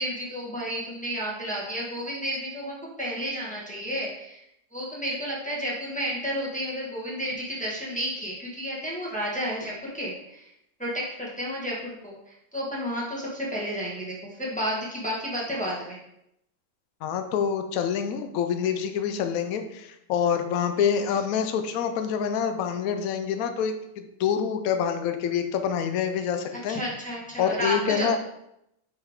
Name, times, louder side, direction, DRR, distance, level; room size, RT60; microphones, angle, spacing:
voice 1, 0.0-4.4 4.7-10.5 10.8-16.0 26.5-28.2, equal, 5° left, -5 dB, 1.4 m, -31 dB
voice 2, 17.0-26.8 27.4-28.2, left 7 dB, 65° left, 7 dB, 0.8 m, -26 dB
5.7 x 5.5 x 3.6 m, 0.81 s
omnidirectional pair, 2.1 m